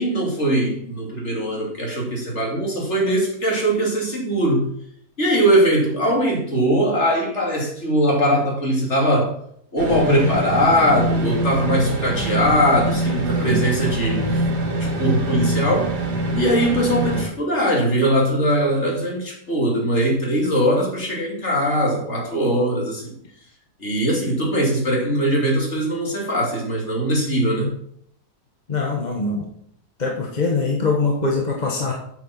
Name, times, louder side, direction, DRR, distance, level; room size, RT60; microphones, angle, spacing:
voice 1, 0.0-4.7 5.2-9.3 9.7-14.4 14.8-15.9 16.3-23.1 23.8-27.7, equal, 45° left, -1 dB, 3.0 m, -21 dB
sound 1, 9.8-17.2, right 2 dB, 80° right, 2.3 m, -24 dB
voice 2, 10.0-10.4 13.1-13.6 28.7-29.4 30.0-31.9, left 3 dB, 30° left, -1 dB, 1.5 m, -23 dB
8.9 x 7.0 x 5.9 m, 0.68 s
omnidirectional pair, 1.7 m